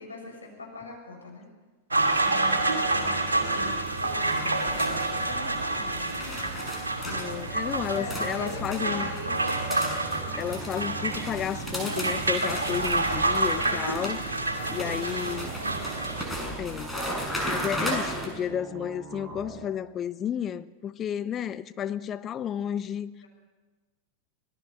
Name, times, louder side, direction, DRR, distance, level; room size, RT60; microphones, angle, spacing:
voice 1, 0.0-1.5 2.2-3.8 4.0-6.6 7.6-9.5 13.5-14.4 14.9-16.0, left 2 dB, 75° left, 6.6 m, -42 dB
sound 1, 1.9-16.2, right 2 dB, 75° right, 2.5 m, -28 dB
sound 2, 2.9-18.3, equal, 5° left, 6.3 m, -37 dB
voice 2, 7.1-9.1 10.3-14.2 14.7-15.5 16.6-16.9 17.5-23.1, left 9 dB, 25° left, 0.7 m, -32 dB
sound 3, 9.8-13.6 15.3-19.7, right 4 dB, 25° right, 5.3 m, -42 dB
25.5 x 18.5 x 6.5 m
figure-of-eight pair, 90°, 0 cm